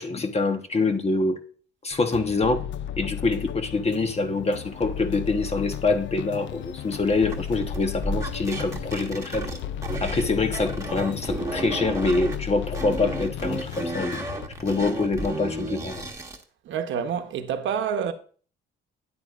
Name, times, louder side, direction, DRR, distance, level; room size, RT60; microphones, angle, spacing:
voice 1, 0.0-1.4 1.8-2.6 3.0-9.5 10.0-14.2 14.6-16.1, left 3 dB, 30° left, 1.2 m, -25 dB
sound 1, 1.9-14.5, left 10 dB, 70° left, 0.4 m, -35 dB
sound 2, 6.4-16.1, left 3 dB, 85° left, 1.5 m, -44 dB
sound 3, 7.3-10.3 10.5-12.4 12.7-16.4, right 2 dB, 15° right, 1.5 m, -32 dB
voice 2, 16.7-18.1, right 7 dB, 70° right, 1.0 m, -27 dB
9.8 x 8.5 x 2.5 m
cardioid pair, 90°, 20 cm